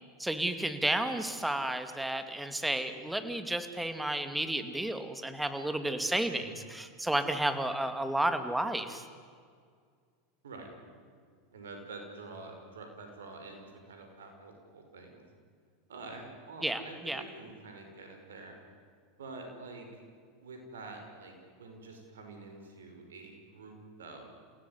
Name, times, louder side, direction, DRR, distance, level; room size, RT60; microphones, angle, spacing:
voice 1, 0.2-9.0 16.6-17.2, right 1 dB, 5° right, 9 dB, 2.5 m, -32 dB
voice 2, 11.5-15.2 15.9-18.5 19.2-20.0 20.4-24.3, right 3 dB, 80° right, 4 dB, 5.5 m, -47 dB
29.0 x 17.0 x 9.8 m, 2.1 s
hypercardioid pair, 90°, 0 cm